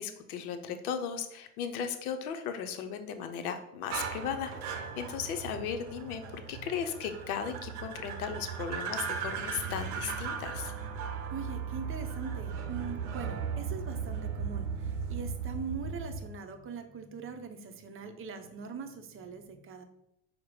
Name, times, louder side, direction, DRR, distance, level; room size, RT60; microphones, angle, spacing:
voice 1, 0.0-10.7, left 7 dB, 80° left, 7 dB, 0.7 m, -36 dB
sound 1, 3.9-16.3, right 6 dB, 85° right, 0.7 m, -37 dB
voice 2, 11.3-19.8, right 5 dB, 30° right, 6 dB, 0.6 m, -42 dB
4.7 x 2.1 x 4.5 m, 0.82 s
hypercardioid pair, 80°, 44 cm